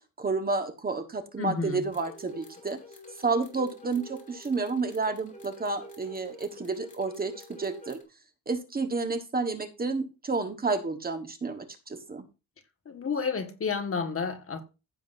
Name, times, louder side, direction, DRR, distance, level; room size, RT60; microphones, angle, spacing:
voice 1, 0.2-2.8 3.2-8.0 8.5-12.2, right 4 dB, 25° right, 1.4 m, -30 dB
voice 2, 1.4-1.8 12.9-14.6, left 5 dB, 40° left, 1.8 m, -31 dB
sound 1, 1.9-8.0, equal, 20° left, 3.0 m, -48 dB
15.5 x 7.4 x 2.7 m
wide cardioid pair, 145°, 34 cm